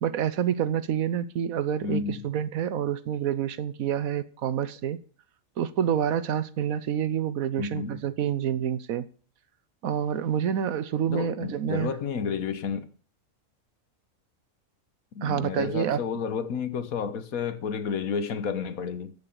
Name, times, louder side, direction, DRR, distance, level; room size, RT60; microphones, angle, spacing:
voice 1, 0.0-5.0 5.6-9.1 9.8-11.9 15.2-16.0, right 9 dB, 85° right, 1.2 m, -28 dB
voice 2, 1.8-2.2 7.6-8.0 11.1-12.9 15.1-19.1, left 6 dB, 85° left, 1.6 m, -31 dB
14.5 x 6.9 x 7.1 m
omnidirectional pair, 1.4 m